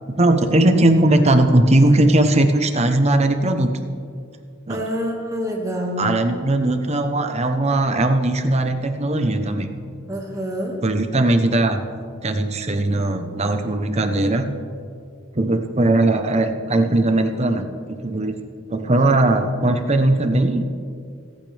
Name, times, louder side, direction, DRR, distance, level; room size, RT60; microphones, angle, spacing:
voice 1, 0.2-3.7 4.7-4.8 6.0-9.7 10.8-11.8 12.2-14.4 15.3-18.4 18.7-20.7, right 1 dB, 30° right, 6 dB, 0.9 m, -19 dB
voice 2, 4.7-6.1 10.1-10.8, equal, 15° right, -1 dB, 1.9 m, -26 dB
25.5 x 9.2 x 3.4 m, 2.3 s
head